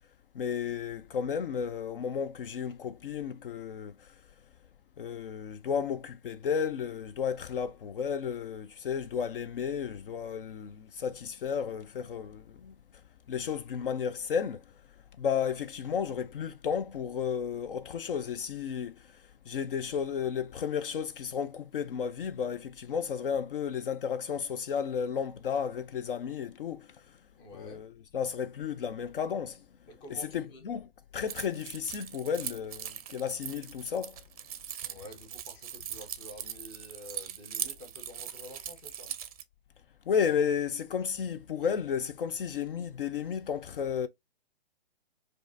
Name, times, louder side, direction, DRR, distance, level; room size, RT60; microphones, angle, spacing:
voice 1, 0.3-4.1 5.0-12.7 13.3-14.6 15.2-27.0 27.5-29.6 30.1-34.1 40.1-44.1, left 7 dB, 60° left, 0.5 m, -33 dB
voice 2, 27.4-27.8 29.9-30.6 34.8-39.1, left 1 dB, 15° left, 0.6 m, -49 dB
Keys jangling, 31.3-39.4, right 10 dB, 40° right, 0.5 m, -40 dB
4.7 x 2.5 x 2.5 m
hypercardioid pair, 135°, 31 cm